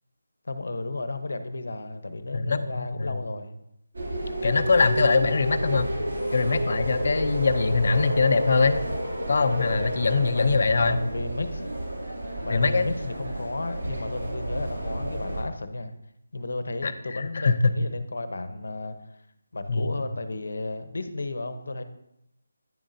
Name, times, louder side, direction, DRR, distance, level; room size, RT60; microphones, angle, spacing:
voice 1, 0.4-3.6 10.3-11.7 12.4-15.9 16.3-19.0 19.5-21.8, left 2 dB, 75° left, 10 dB, 0.8 m, -33 dB
voice 2, 2.3-3.2 4.4-5.9 6.3-8.8 9.3-11.0 12.5-12.9 16.8-17.7 19.7-19.9, left 4 dB, 50° left, 11 dB, 0.5 m, -23 dB
sound 1, 3.9-15.4, right 1 dB, 75° right, 2.5 m, -31 dB
9.9 x 7.4 x 2.7 m, 0.83 s
figure-of-eight pair, 175°, 0 cm